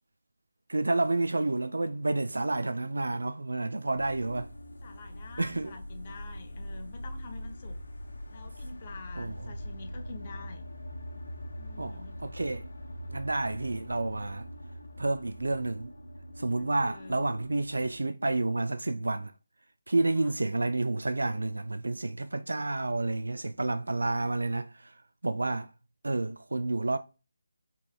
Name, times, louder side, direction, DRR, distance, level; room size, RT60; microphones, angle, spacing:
voice 1, 0.7-4.5 5.4-5.7 9.2-9.3 11.8-12.6 13.1-14.5 15.0-15.9 16.4-19.3 19.9-24.7 25.2-25.7 26.0-27.0, right 2 dB, 75° right, 0.3 m, -30 dB
sound 1, 4.0-18.1, equal, 70° left, 0.7 m, -43 dB
voice 2, 4.8-7.8 8.3-10.7 11.6-12.2 16.5-17.2 20.0-20.4, left 4 dB, 35° left, 0.7 m, -47 dB
4.9 x 2.9 x 2.3 m
figure-of-eight pair, 155°, 0 cm